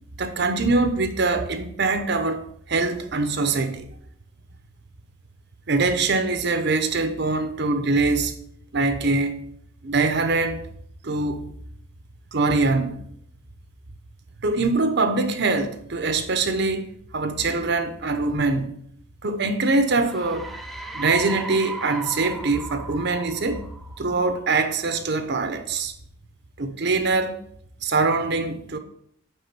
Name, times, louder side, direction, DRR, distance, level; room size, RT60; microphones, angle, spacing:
voice 1, 0.2-2.4 2.7-3.9 5.7-8.3 8.7-9.4 9.8-10.6 11.0-11.5 12.3-12.9 14.4-18.7 19.2-20.5 20.9-23.6 24.0-25.9 26.6-27.3 27.8-28.8, right 3 dB, 50° right, 0.8 m, -23 dB
sound 1, 20.0-24.6, right 2 dB, ahead, 0.5 m, -37 dB
9.3 x 3.8 x 5.9 m
head